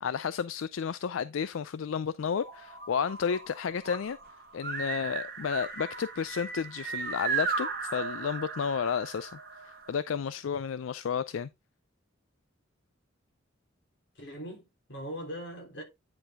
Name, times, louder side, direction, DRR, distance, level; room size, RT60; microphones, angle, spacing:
voice 1, 0.0-4.2 4.5-9.4 9.6-11.5, left 6 dB, 80° left, 0.4 m, -32 dB
sound 1, 2.3-9.9, right 5 dB, 50° right, 1.7 m, -36 dB
voice 2, 14.1-15.8, equal, 60° left, 3.3 m, -40 dB
9.6 x 4.6 x 3.5 m
head